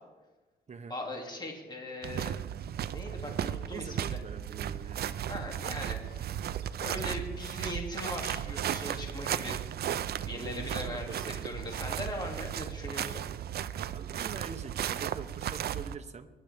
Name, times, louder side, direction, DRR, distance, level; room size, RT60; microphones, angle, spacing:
voice 1, 0.9-2.3 2.9-4.2 5.3-6.4 6.8-9.6 10.2-13.2, left 1 dB, 25° left, 0 dB, 2.7 m, -40 dB
sound 1, 2.0-16.0, right 10 dB, 70° right, 0.5 m, -35 dB
voice 2, 3.7-5.1 10.3-11.5 13.9-16.3, right 5 dB, 40° right, 7 dB, 1.0 m, -44 dB
23.0 x 11.0 x 3.5 m, 1.2 s
cardioid pair, 110°, 17 cm